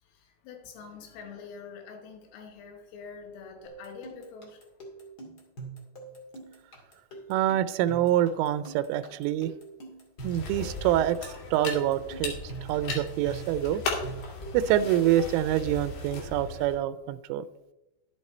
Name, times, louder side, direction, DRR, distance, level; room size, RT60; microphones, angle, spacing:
voice 1, 0.0-4.7 12.4-12.7, left 5 dB, 90° left, 3 dB, 4.3 m, -46 dB
sound 1, 3.6-16.0, right 4 dB, 35° left, 1.5 m, -44 dB
voice 2, 7.3-9.5 10.2-11.2 11.5-12.3 12.7-13.8 14.5-17.4, right 12 dB, 90° right, 13 dB, 3.1 m, -26 dB
sound 2, 10.2-16.7, left 3 dB, 65° left, 4.1 m, -37 dB
12.5 x 8.4 x 4.2 m, 0.96 s
omnidirectional pair, 5.6 m